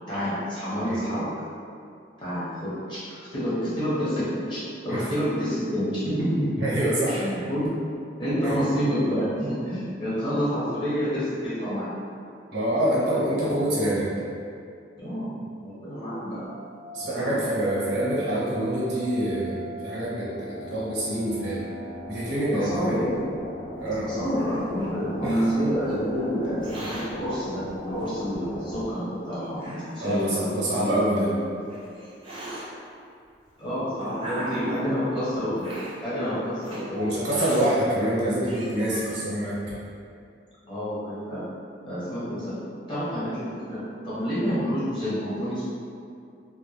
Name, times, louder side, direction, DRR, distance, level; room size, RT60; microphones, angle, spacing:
voice 1, 0.1-1.3 2.2-6.5 7.1-7.8 8.2-11.9 15.0-16.4 17.0-17.4 22.5-23.3 24.0-31.5 33.6-35.7 36.0-37.4 38.1-38.2 40.7-41.5 41.8-42.6 42.9-45.6, equal, 25° left, -12 dB, 0.9 m, -28 dB
voice 2, 6.6-7.3 8.4-8.5 12.5-14.1 16.9-21.6 22.1-23.1 23.8-24.1 25.2-25.4 30.0-31.3 36.9-39.8, right 1 dB, 70° right, -8 dB, 0.7 m, -26 dB
sound 1, 16.4-28.9, equal, 50° left, 0.3 m, -40 dB
Hiss, 23.9-25.5 26.4-27.0 28.0-28.1 28.9-29.0 29.6-30.6 31.4-32.6 33.5-35.0 35.6-35.9 36.6-36.8 37.2-37.7 38.2-38.3 38.4-39.2, right 1 dB, 30° right, 0.6 m, -38 dB
2.2 x 2.0 x 3.1 m, 2.4 s
head